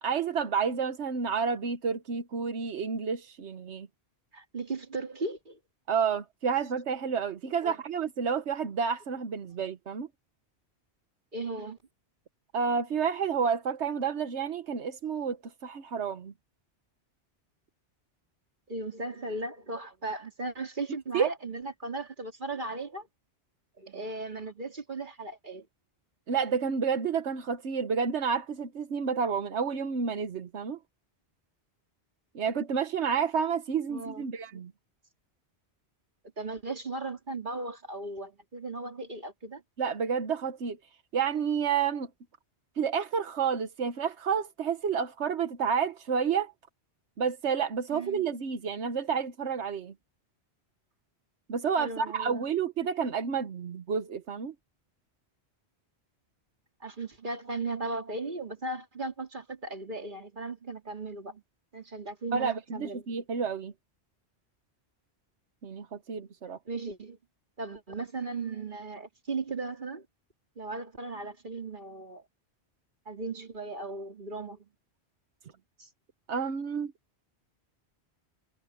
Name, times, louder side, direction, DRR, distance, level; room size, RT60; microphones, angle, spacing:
voice 1, 0.0-3.9 5.9-10.1 12.5-15.4 15.6-16.3 21.1-21.3 26.3-30.8 32.3-34.7 39.8-40.8 41.1-42.1 42.8-46.5 47.2-49.9 51.5-54.5 62.3-63.7 65.6-66.6 76.3-76.9, right 6 dB, 85° right, 1.4 m, -30 dB
voice 2, 4.3-5.6 7.6-7.8 11.3-11.8 18.7-23.1 23.8-25.7 33.9-34.2 36.4-39.6 47.9-48.2 51.8-52.4 56.8-61.4 61.7-63.1 66.7-67.2 67.6-70.1 70.6-72.2 73.1-74.7 75.8-75.9, right 3 dB, 45° right, 2.9 m, -37 dB
omnidirectional pair, 1.1 m